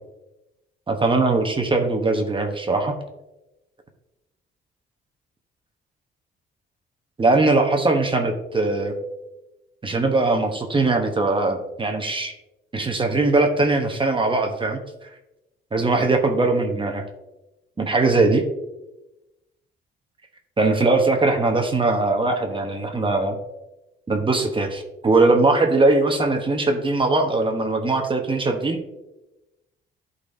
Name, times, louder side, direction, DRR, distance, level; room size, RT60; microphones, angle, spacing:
voice 1, 0.9-2.9 7.2-8.9 9.8-12.3 12.7-14.8 15.7-17.0 17.8-18.4 20.6-23.4 24.1-28.8, right 3 dB, 25° right, 4 dB, 0.9 m, -20 dB
11.5 x 4.1 x 2.6 m, 0.98 s
cardioid pair, 90°, 20 cm